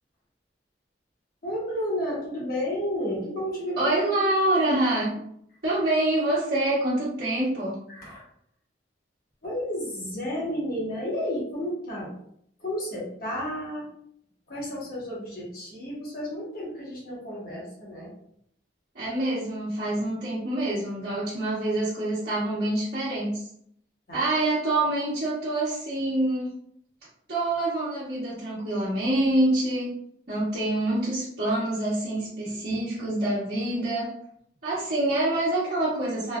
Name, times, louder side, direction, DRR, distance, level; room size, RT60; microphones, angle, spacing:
voice 1, 1.4-4.3 7.9-8.2 9.4-12.1 12.6-13.9 14.5-18.1 24.1-24.3 32.4-32.8, equal, 55° left, -5 dB, 1.0 m, -32 dB
voice 2, 3.8-5.2 5.6-7.8 18.9-23.4 24.1-26.5 27.3-29.9 30.3-34.1 34.6-36.4, right 1 dB, 55° right, -10 dB, 1.0 m, -26 dB
3.1 x 2.3 x 2.2 m, 0.69 s
head